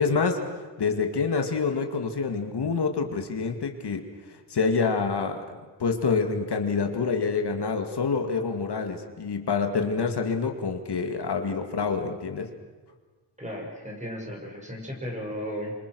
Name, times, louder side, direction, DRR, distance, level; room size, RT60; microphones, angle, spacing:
voice 1, 0.0-12.5, left 5 dB, 65° left, 5 dB, 2.2 m, -27 dB
voice 2, 13.4-15.7, equal, 15° right, -1 dB, 6.5 m, -35 dB
28.5 x 26.5 x 6.3 m, 1.3 s
wide cardioid pair, 135°, 42 cm